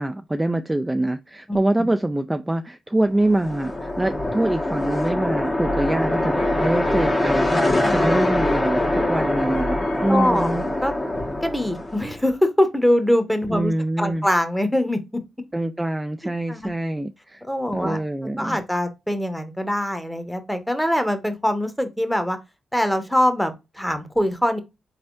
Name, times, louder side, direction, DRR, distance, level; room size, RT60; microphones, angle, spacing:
voice 1, 0.0-10.6 13.5-14.3 15.5-17.4 17.7-18.6, right 1 dB, 15° right, 0.4 m, -24 dB
sound 1, 3.2-12.2, left 1 dB, 35° left, 1.3 m, -23 dB
Wind instrument woodwind instrument, 6.4-10.6, left 1 dB, 70° left, 1.8 m, -43 dB
voice 2, 7.8-8.3 10.1-10.5 10.8-10.9 11.4-15.0 16.5-16.7 17.5-18.0 18.4-22.4 22.7-24.6, left 1 dB, 5° left, 1.0 m, -23 dB
4.0 x 3.4 x 2.5 m
supercardioid pair, 45°, 0 cm